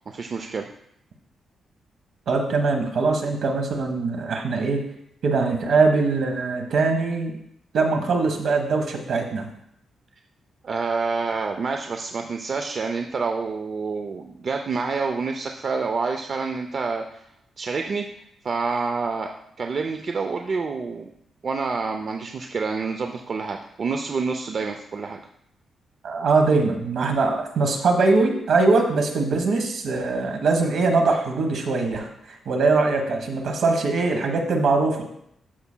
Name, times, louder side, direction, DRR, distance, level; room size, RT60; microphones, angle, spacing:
voice 1, 0.1-0.7 10.6-17.2 17.6-18.1 18.4-19.3 19.6-21.1 21.4-25.2, right 4 dB, 40° right, 4 dB, 0.4 m, -27 dB
voice 2, 2.3-4.8 5.2-7.3 7.7-9.5 26.0-32.1 32.5-35.0, right 3 dB, 65° right, 4 dB, 1.2 m, -22 dB
12.5 x 5.7 x 2.2 m, 0.73 s
wide cardioid pair, 155°, 0 cm